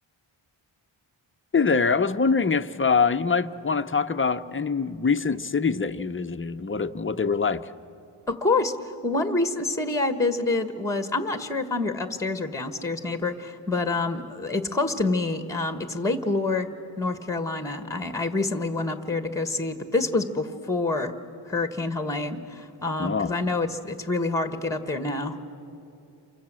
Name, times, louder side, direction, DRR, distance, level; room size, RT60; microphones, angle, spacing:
voice 1, 1.5-7.6 23.0-23.3, left 5 dB, 25° left, 0.7 m, -24 dB
voice 2, 8.3-8.7 9.0-16.7 17.0-21.1 21.5-25.4, left 3 dB, 5° left, 1.3 m, -27 dB
28.5 x 24.5 x 7.5 m
wide cardioid pair, 130°, 48 cm